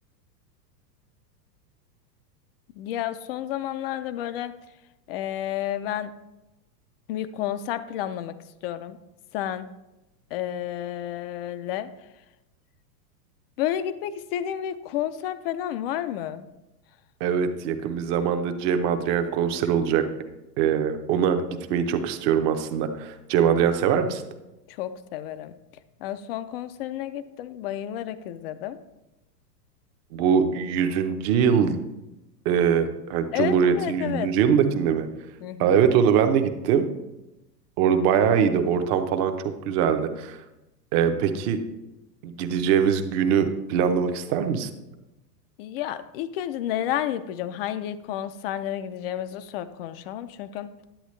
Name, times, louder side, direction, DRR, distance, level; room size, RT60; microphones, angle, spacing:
voice 1, 2.8-4.5 5.1-6.1 7.1-8.3 8.6-9.0 9.3-9.7 10.3-11.9 13.6-16.4 24.7-25.5 26.0-28.8 33.3-34.3 35.4-35.7 45.6-50.7, left 11 dB, 40° left, 13 dB, 0.4 m, -31 dB
voice 2, 17.2-20.1 20.6-24.2 30.1-31.8 32.4-35.1 35.6-37.0 37.8-39.3 39.7-40.4 40.9-41.6 42.2-44.7, right 7 dB, 35° right, 7 dB, 0.8 m, -22 dB
10.0 x 8.0 x 3.2 m, 0.97 s
hypercardioid pair, 135°, 50 cm